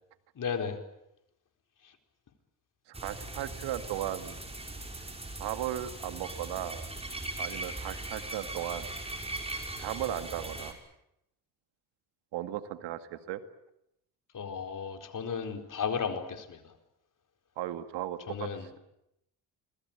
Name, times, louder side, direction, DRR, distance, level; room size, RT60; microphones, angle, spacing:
voice 1, 0.3-0.8 1.8-1.9 14.3-16.7 18.3-18.7, left 6 dB, 50° left, 5 dB, 4.5 m, -34 dB
sound 1, 2.9-10.7, right 2 dB, 15° right, 6.2 m, -40 dB
voice 2, 2.9-4.3 5.4-6.9 7.4-8.9 9.8-10.7 12.3-13.4 17.6-18.8, right 12 dB, 75° right, 10 dB, 2.1 m, -36 dB
27.0 x 20.5 x 8.9 m, 0.82 s
supercardioid pair, 75°, 42 cm